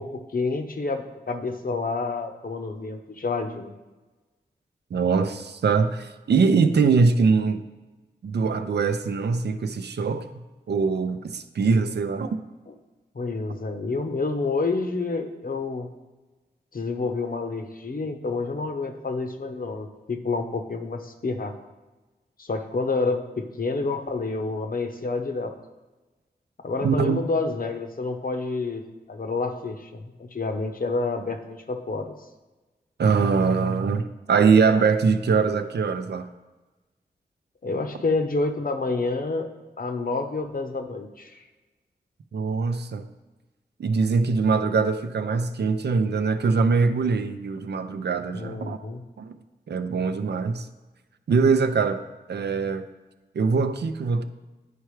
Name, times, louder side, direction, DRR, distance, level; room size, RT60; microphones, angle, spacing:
voice 1, 0.0-3.7 13.1-15.9 16.7-21.6 22.4-25.5 26.6-28.8 29.1-32.1 37.6-39.5 39.8-41.4 48.3-49.0, left 3 dB, 55° left, 5 dB, 0.8 m, -28 dB
voice 2, 4.9-7.6 8.2-10.3 10.7-12.4 26.8-27.2 33.0-36.3 42.3-43.1 43.8-48.8 49.2-49.4 49.7-50.7 51.3-52.0 52.3-52.9 53.3-54.2, right 5 dB, 70° right, 9 dB, 0.5 m, -22 dB
10.0 x 4.5 x 3.2 m, 1.2 s
cardioid pair, 50°, 18 cm